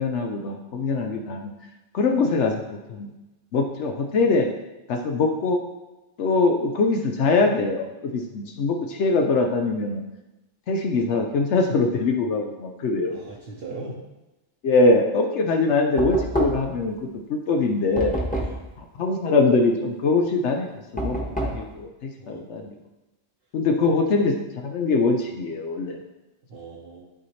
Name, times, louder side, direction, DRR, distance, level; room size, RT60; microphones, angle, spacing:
voice 1, 0.0-1.5 1.9-2.5 2.9-3.1 3.5-4.5 4.9-5.6 6.2-10.0 10.7-13.2 14.6-18.1 19.0-22.7 23.5-26.0, left 3 dB, 75° left, 2 dB, 1.0 m, -23 dB
voice 2, 13.1-14.0 18.4-18.6 22.2-22.6 23.8-23.9 26.5-27.0, right 3 dB, 55° right, -4 dB, 1.2 m, -39 dB
Knock, 16.0-16.8 18.0-18.7 21.0-21.7, right 1 dB, 5° left, 1.2 m, -27 dB
11.0 x 4.2 x 3.2 m, 1.0 s
omnidirectional pair, 1.2 m